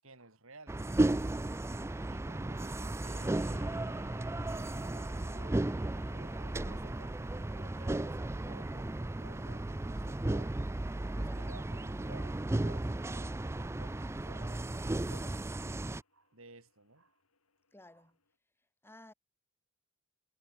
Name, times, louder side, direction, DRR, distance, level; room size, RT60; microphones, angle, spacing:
voice 1, 0.0-10.5 11.0-17.2 17.9-18.1, right 2 dB, 65° right, 6.8 m, -57 dB
sound 1, 0.7-16.0, right 2 dB, 10° right, 0.4 m, -35 dB
sound 2, 3.0-18.3, left 3 dB, 85° left, 6.3 m, -63 dB
voice 2, 11.1-11.5 17.7-18.2 18.8-19.1, left 1 dB, 10° left, 6.1 m, -55 dB
head